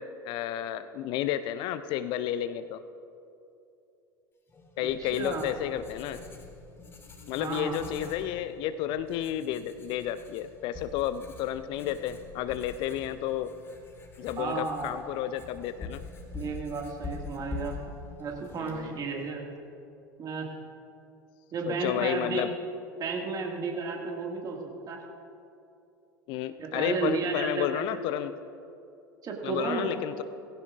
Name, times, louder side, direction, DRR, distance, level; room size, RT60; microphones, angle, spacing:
voice 1, 0.0-2.8 4.8-6.2 7.3-13.6 14.2-16.0 18.6-19.1 21.7-22.5 26.3-28.3 29.4-30.2, left 11 dB, 45° left, 12 dB, 0.5 m, -31 dB
Writing, 4.5-19.3, left 3 dB, 20° left, 1.9 m, -45 dB
voice 2, 4.8-5.5 7.4-7.8 14.4-14.9 16.3-17.8 18.2-19.5 20.2-20.5 21.5-22.5 23.0-24.6 24.9-25.0 26.6-27.8 29.2-29.9, right 4 dB, 35° right, 1 dB, 2.0 m, -33 dB
18.0 x 16.0 x 2.5 m, 2.6 s
figure-of-eight pair, 75°, 11 cm